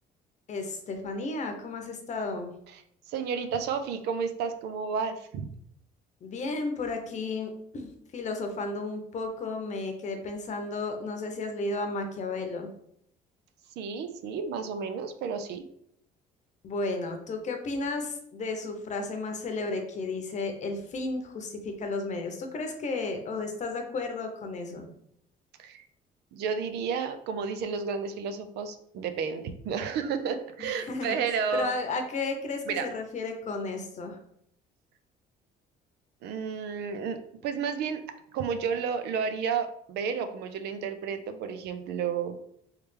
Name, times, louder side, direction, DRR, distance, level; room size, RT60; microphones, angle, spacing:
voice 1, 0.5-2.5 6.2-12.7 16.6-24.9 30.6-31.2 31.5-34.2, left 3 dB, 45° left, 5 dB, 0.8 m, -33 dB
voice 2, 3.1-5.5 13.8-15.6 25.6-25.9 26.3-31.7 32.7-32.9 36.2-38.0 38.3-42.4, right 6 dB, 80° right, 9 dB, 0.5 m, -31 dB
3.3 x 3.1 x 3.3 m, 0.70 s
cardioid pair, 110°, 17 cm